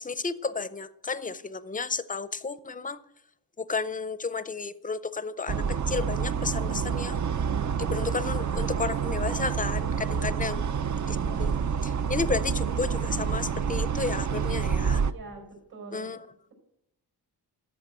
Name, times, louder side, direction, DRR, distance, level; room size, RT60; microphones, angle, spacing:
voice 1, 0.0-3.0 3.6-7.2 7.8-10.6 11.1-11.6 11.8-15.0 15.9-16.3, left 4 dB, 20° left, 15 dB, 0.5 m, -32 dB
sound 1, 5.5-15.1, right 7 dB, 45° right, 0.5 m, -28 dB
voice 2, 10.0-10.7 15.0-16.1, right 3 dB, 65° right, 1 dB, 5.2 m, -45 dB
13.0 x 5.3 x 7.9 m, 0.82 s
wide cardioid pair, 100°, 40 cm